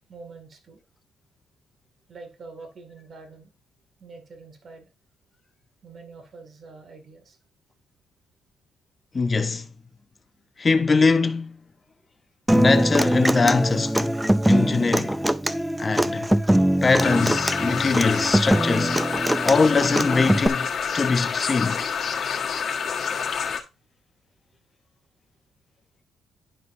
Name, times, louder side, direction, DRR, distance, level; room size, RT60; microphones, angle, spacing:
voice 1, 0.1-0.8 2.1-3.5 4.0-4.9 5.8-7.4, right 4 dB, 50° right, 2.3 m, -45 dB
voice 2, 9.1-9.7 10.6-11.6 12.5-14.2 14.4-15.2 15.8-16.3 16.8-19.0 19.4-21.9, left 4 dB, 30° left, 0.8 m, -22 dB
Human voice / Acoustic guitar, 12.5-20.5, right 1 dB, 5° right, 0.4 m, -22 dB
sound 1, 17.0-23.6, left 6 dB, 55° left, 1.6 m, -28 dB
11.0 x 5.3 x 2.7 m
cardioid pair, 90°, 0 cm